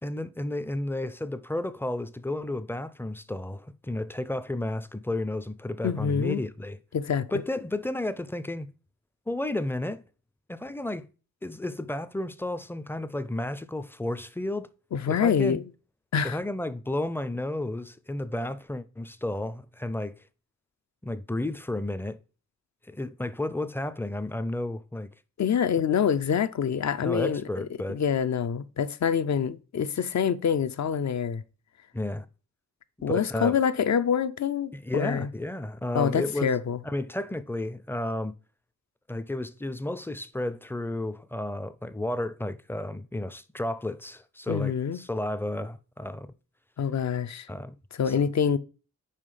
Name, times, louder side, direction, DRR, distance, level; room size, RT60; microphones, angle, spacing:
voice 1, 0.0-6.8 7.3-8.7 9.3-10.0 10.5-11.1 11.4-14.7 15.1-15.6 16.2-20.2 21.0-22.2 22.9-25.1 27.0-28.0 31.9-32.3 33.1-33.5 34.7-36.5 36.8-38.3 39.1-46.3 47.5-47.7 48.1-48.2, left 1 dB, 5° left, 0.4 m, -32 dB
voice 2, 5.8-6.4 6.9-7.3 14.9-15.6 16.1-16.4 25.4-31.4 33.0-35.3 35.9-36.8 44.5-45.0 46.8-47.5 47.9-48.6, left 7 dB, 60° left, 0.5 m, -26 dB
5.7 x 4.7 x 4.9 m
wide cardioid pair, 105°, 32 cm